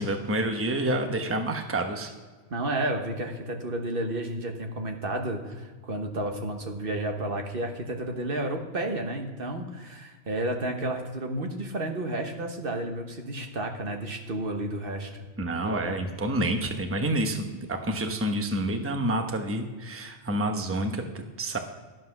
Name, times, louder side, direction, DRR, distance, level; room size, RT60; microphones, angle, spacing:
voice 1, 0.0-2.1 15.4-21.6, right 1 dB, 15° right, 5 dB, 0.9 m, -28 dB
voice 2, 2.5-15.2 15.6-16.0, right 1 dB, 55° right, 3 dB, 1.4 m, -31 dB
12.0 x 7.7 x 5.9 m, 1.4 s
omnidirectional pair, 1.1 m